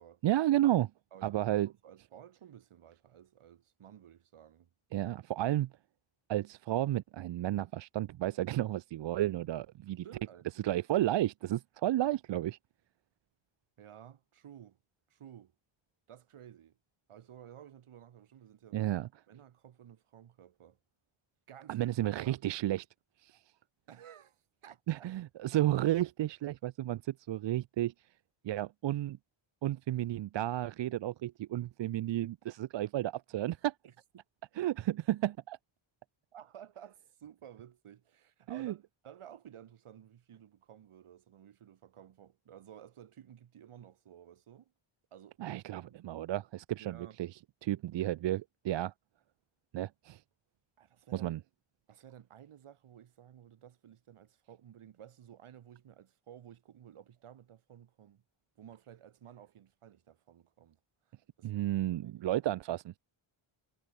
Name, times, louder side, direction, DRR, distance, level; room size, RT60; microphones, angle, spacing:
voice 1, 0.2-0.9 1.2-1.7 4.9-5.7 6.3-10.0 10.6-12.6 18.7-19.1 21.7-22.9 23.2-23.4 24.9-27.9 28.4-29.2 29.6-33.7 34.6-34.7 35.1-35.6 38.5-38.7 45.4-47.3 47.6-48.9 49.7-50.2 51.1-51.4 61.4-63.0, right 14 dB, 60° right, 0.6 m, -32 dB
voice 2, 1.1-4.7 10.0-10.7 13.8-14.8 15.1-15.5 16.1-16.8 17.1-18.8 19.3-20.8 21.5-22.5 23.9-25.1 33.8-33.9 36.3-44.7 45.1-45.4 45.7-46.0 46.8-47.3 50.8-51.4 51.9-58.2 58.6-60.8 61.0-62.2, right 10 dB, 80° right, 4.9 m, -54 dB
wide cardioid pair, 150°, 50 cm